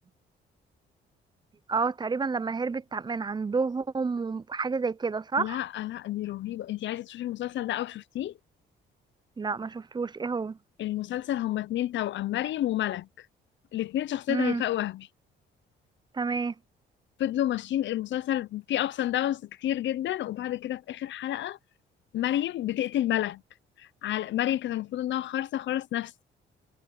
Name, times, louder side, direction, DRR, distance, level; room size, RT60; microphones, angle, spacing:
voice 1, 1.7-5.6 9.4-10.6 14.3-14.6 16.2-16.5, right 4 dB, 20° right, 0.5 m, -29 dB
voice 2, 5.4-8.3 10.8-13.1 13.7-15.1 17.2-21.6 22.1-23.4 23.8-26.1, left 12 dB, 70° left, 0.7 m, -30 dB
cardioid pair, 90°, 20 cm